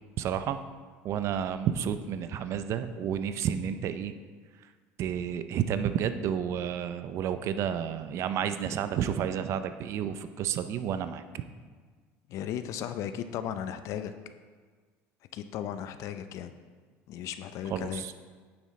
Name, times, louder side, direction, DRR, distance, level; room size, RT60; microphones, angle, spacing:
voice 1, 0.2-0.6 1.0-4.1 5.0-11.2 17.7-18.1, right 9 dB, 55° right, 11 dB, 0.5 m, -31 dB
voice 2, 12.3-14.1 15.3-16.5 17.1-18.0, left 9 dB, 60° left, 10 dB, 0.6 m, -36 dB
9.4 x 7.3 x 3.2 m, 1.5 s
supercardioid pair, 110°, 6 cm